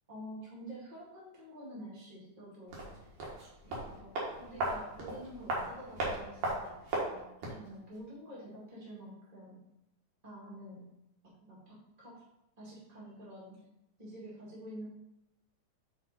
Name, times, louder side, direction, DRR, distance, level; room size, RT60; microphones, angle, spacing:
voice 1, 0.1-3.1 3.6-4.1 4.4-9.6 10.2-10.8 11.4-12.1 12.6-13.6 14.0-14.9, equal, 15° right, -6 dB, 1.7 m, -48 dB
sound 1, 2.7-7.7 7.9-8.0, right 2 dB, 70° right, 2.8 m, -37 dB
8.0 x 3.6 x 4.1 m, 0.90 s
omnidirectional pair, 3.7 m